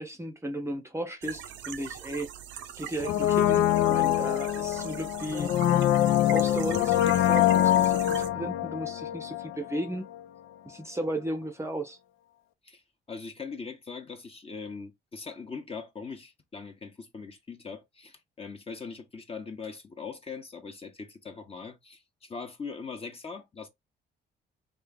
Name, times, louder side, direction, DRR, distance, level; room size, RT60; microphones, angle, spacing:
voice 1, 0.0-2.3 2.8-5.5 6.3-10.0 10.6-12.0, right 1 dB, 15° right, 0.7 m, -35 dB
sound 1, 1.2-8.3, right 9 dB, 70° right, 0.6 m, -41 dB
Brass instrument, 3.0-9.9 10.1-10.2, left 12 dB, 85° left, 0.4 m, -24 dB
voice 2, 13.1-23.7, left 5 dB, 30° left, 0.9 m, -41 dB
3.2 x 2.4 x 3.5 m
cardioid pair, 90°, 20 cm